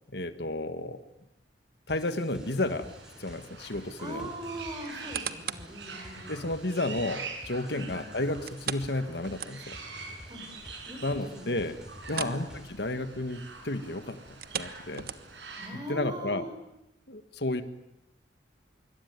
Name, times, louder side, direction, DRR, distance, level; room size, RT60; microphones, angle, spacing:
voice 1, 0.1-1.0 1.9-2.9 3.2-4.3 6.3-9.8 11.0-11.8 12.1-14.2 14.5-15.1 15.9-16.5 17.1-17.6, left 2 dB, 65° left, 9 dB, 1.7 m, -32 dB
sound 1, 1.9-12.9, equal, 5° right, 3.7 m, -51 dB
sound 2, 2.4-15.7, right 4 dB, 75° right, 7.1 m, -45 dB
voice 2, 4.0-6.5 7.7-8.0 10.3-10.5 10.9-11.6 12.1-12.4 15.6-16.5, right 1 dB, 25° right, 4 dB, 7.2 m, -41 dB
sound 3, 4.8-5.8 6.3-6.4 8.5-9.9 10.3-10.4 10.8-10.9 12.0-12.5 12.7-13.0 14.3-15.5 16.1-16.2, right 7 dB, 55° right, 1.3 m, -38 dB
26.0 x 23.5 x 9.5 m, 0.84 s
head